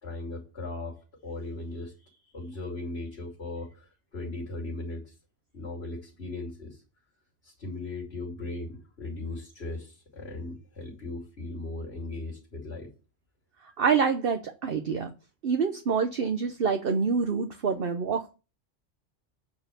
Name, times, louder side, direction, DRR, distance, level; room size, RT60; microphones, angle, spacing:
voice 1, 0.0-5.2 5.5-6.8 7.4-12.9 17.7-17.8, left 2 dB, 55° left, 3.3 m, -38 dB
voice 2, 13.8-15.1 15.4-18.3, right 5 dB, 50° right, 1.0 m, -26 dB
9.5 x 4.7 x 6.9 m
omnidirectional pair, 1.3 m